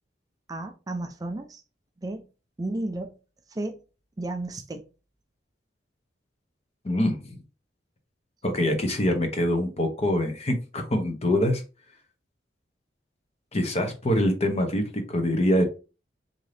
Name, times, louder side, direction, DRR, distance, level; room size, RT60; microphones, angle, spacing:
voice 1, 0.5-1.6 2.0-2.3 2.6-3.1 3.5-3.8 4.2-4.8, right 2 dB, 20° right, 0.4 m, -33 dB
voice 2, 6.8-7.4 8.4-11.6 13.5-15.6, left 1 dB, 35° left, 0.7 m, -24 dB
3.8 x 2.7 x 3.2 m
head